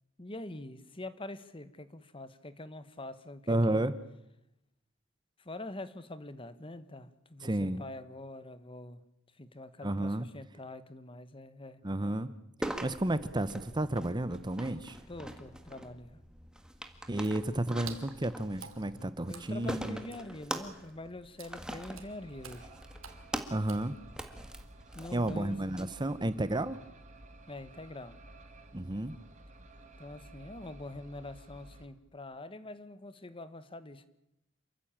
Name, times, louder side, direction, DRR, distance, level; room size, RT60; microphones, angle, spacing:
voice 1, 0.2-3.8 5.4-9.0 9.4-11.8 15.1-16.2 19.3-22.7 24.9-25.6 27.5-28.2 30.0-34.1, left 2 dB, 25° left, 13 dB, 1.2 m, -45 dB
voice 2, 3.5-3.9 7.4-7.8 9.8-10.3 11.8-12.3 12.8-15.0 17.1-20.0 23.5-24.0 25.1-26.8 28.7-29.2, right 1 dB, 20° right, 14 dB, 0.8 m, -31 dB
sound 1, 12.6-25.8, right 1 dB, 5° right, 1.7 m, -43 dB
Water / Splash splatter, 17.2-24.4, right 6 dB, 85° right, 2.7 m, -52 dB
sound 2, 21.7-31.9, right 1 dB, 35° right, 2.2 m, -53 dB
27.5 x 15.0 x 8.8 m, 0.86 s
head